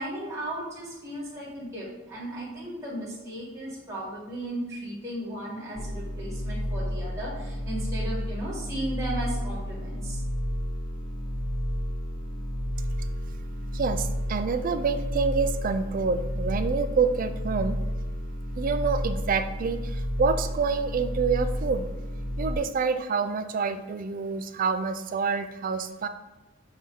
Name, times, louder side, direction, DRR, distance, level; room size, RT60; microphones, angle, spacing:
voice 1, 0.0-10.2, right 1 dB, 15° right, -8 dB, 1.9 m, -35 dB
sound 1, 5.8-22.6, equal, 20° left, 0.5 m, -31 dB
voice 2, 13.7-17.8 18.6-21.8 22.4-26.1, right 5 dB, 45° right, 10 dB, 0.3 m, -27 dB
7.7 x 2.8 x 4.6 m, 1.0 s
head